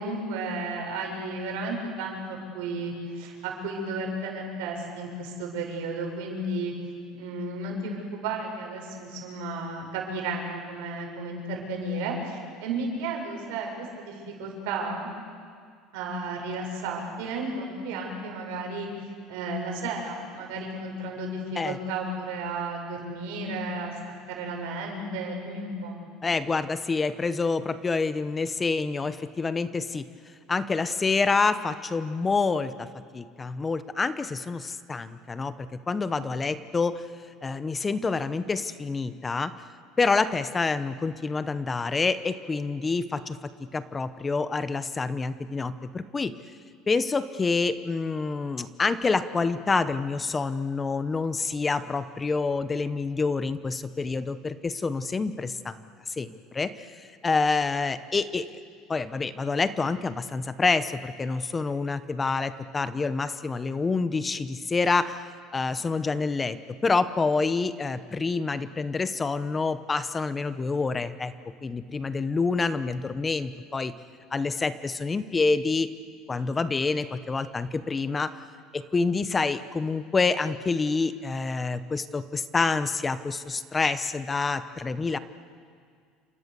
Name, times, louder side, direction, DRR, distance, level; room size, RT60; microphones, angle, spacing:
voice 1, 0.0-6.7 7.1-15.1 15.9-23.9 24.3-26.0, right 2 dB, 85° right, 1 dB, 6.9 m, -33 dB
voice 2, 26.2-30.0 30.5-32.9 33.1-37.0 37.4-39.5 40.0-43.4 43.7-46.3 46.9-55.7 56.2-58.5 58.9-65.2 65.5-66.6 66.8-71.3 71.6-73.9 74.3-75.9 76.3-78.3 78.7-85.2, left 4 dB, 20° left, 13 dB, 0.9 m, -27 dB
29.0 x 26.5 x 6.9 m, 2.1 s
cardioid pair, 135°, 0 cm